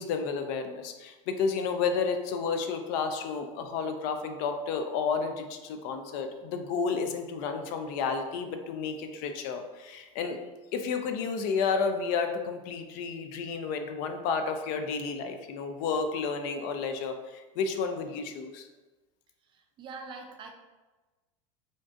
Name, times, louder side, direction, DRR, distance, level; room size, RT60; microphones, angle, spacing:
voice 1, 0.0-10.4 10.7-18.7, left 5 dB, 55° left, 6 dB, 0.4 m, -31 dB
voice 2, 19.5-20.5, right 4 dB, 30° right, 3 dB, 0.4 m, -44 dB
3.5 x 2.5 x 2.4 m, 1.2 s
supercardioid pair, 130°, 17 cm